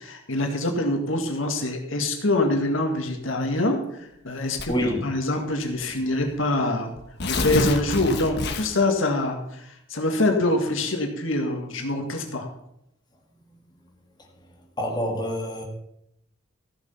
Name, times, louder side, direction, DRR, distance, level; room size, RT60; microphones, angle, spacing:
voice 1, 0.0-3.8 4.2-6.9 7.3-12.5, left 2 dB, 85° left, 3 dB, 2.0 m, -25 dB
Tearing, 4.5-4.9 5.8-5.9 6.2-6.3 7.0-8.9, left 2 dB, 60° left, 1.3 m, -27 dB
voice 2, 4.7-5.0 14.8-15.6, equal, 20° left, 0 dB, 2.1 m, -26 dB
14.5 x 7.3 x 5.7 m, 0.79 s
head